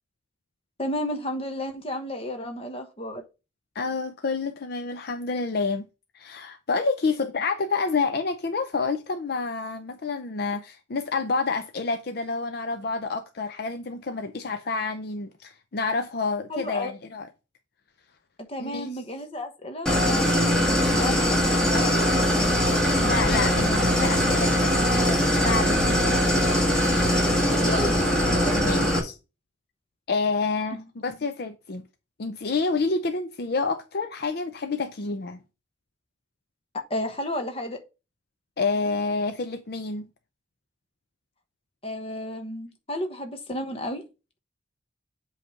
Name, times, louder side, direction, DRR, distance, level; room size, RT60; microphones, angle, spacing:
voice 1, 0.8-3.2 16.5-16.9 18.4-22.4 27.5-28.0 28.4-28.6 30.7-30.8 36.9-37.8 41.8-44.0, left 1 dB, 30° left, 1.2 m, -32 dB
voice 2, 3.8-5.8 6.1-17.3 18.6-18.9 22.9-26.2 28.5-29.2 30.1-31.8 32.2-35.4 38.6-40.1, left 4 dB, 55° left, 0.6 m, -28 dB
Idling, 19.9-29.0, equal, 5° left, 1.5 m, -21 dB
7.6 x 3.3 x 5.6 m
head